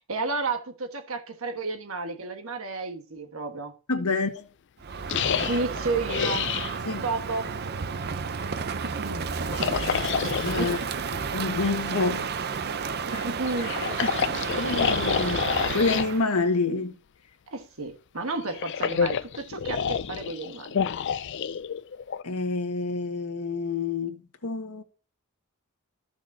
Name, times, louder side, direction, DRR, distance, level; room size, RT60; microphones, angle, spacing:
voice 1, 0.1-3.8 5.5-6.5 7.0-7.5 8.8-9.3 10.6-11.1 13.1-13.8 17.5-20.8, right 3 dB, 65° right, 1.3 m, -32 dB
voice 2, 3.9-4.4 6.8-7.0 10.4-10.8 11.3-12.3 13.1-13.2 14.6-16.9 22.2-24.2 24.4-24.8, left 3 dB, 90° left, 1.5 m, -27 dB
Crow, 4.8-16.3, right 5 dB, 45° right, 0.6 m, -31 dB
sound 1, 5.1-6.7 9.5-10.8 13.4-16.1 18.3-22.2, left 7 dB, 55° left, 0.4 m, -28 dB
14.0 x 6.2 x 2.7 m
head